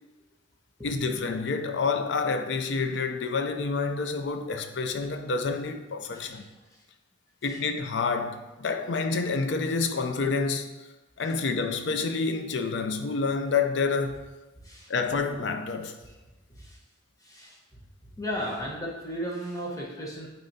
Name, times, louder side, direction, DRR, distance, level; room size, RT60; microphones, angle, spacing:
voice 1, 0.8-6.5 7.4-10.9 11.2-14.2 14.9-16.0, left 4 dB, 65° left, 0.5 m, -28 dB
voice 2, 6.1-6.4 6.7-6.8 7.4-7.6 11.3-11.4 14.6-14.9 16.0-16.1 16.5-16.8 17.2-17.8 18.2-20.3, equal, 20° left, 1.0 m, -36 dB
8.8 x 4.1 x 2.8 m
head